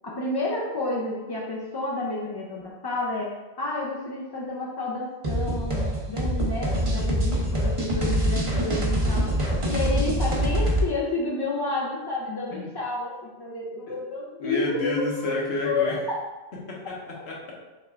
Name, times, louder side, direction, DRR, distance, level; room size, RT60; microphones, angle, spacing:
voice 1, 0.0-9.3 9.7-15.3 15.6-16.2, left 2 dB, 35° left, -4 dB, 0.4 m, -30 dB
sound 1, 5.2-10.9, right 1 dB, 35° right, 0.7 m, -24 dB
voice 2, 14.4-16.0 16.7-17.5, left 2 dB, 85° left, -3 dB, 1.3 m, -30 dB
5.6 x 3.3 x 2.4 m, 1.2 s
omnidirectional pair, 1.1 m